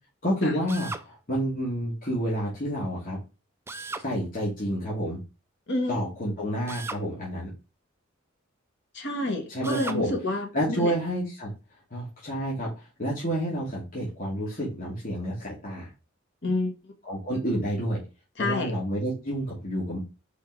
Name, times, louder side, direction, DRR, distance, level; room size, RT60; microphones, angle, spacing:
voice 1, 0.2-3.2 3.9-5.2 5.9-7.5 9.5-10.1 10.5-11.5 11.9-12.7 13.0-15.9 17.1-18.0 18.4-20.0, equal, 45° left, 2.7 m, -29 dB
Drill, 0.7-1.1 3.7-4.1 6.7-7.1 9.6-10.0, right 3 dB, 10° right, 0.5 m, -36 dB
voice 2, 8.9-10.9 16.4-16.7 18.4-18.7, left 2 dB, 60° left, 1.8 m, -28 dB
5.1 x 4.8 x 4.8 m
head